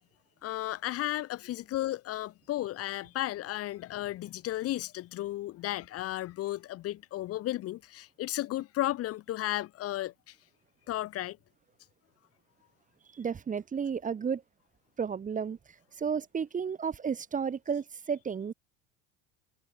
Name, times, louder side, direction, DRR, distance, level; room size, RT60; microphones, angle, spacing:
voice 1, 0.4-10.1 10.9-11.4, left 15 dB, 45° left, 0.8 m, -34 dB
voice 2, 13.1-14.4 15.0-15.6 16.0-18.5, right 6 dB, 25° right, 1.0 m, -32 dB
hypercardioid pair, 85°, 33 cm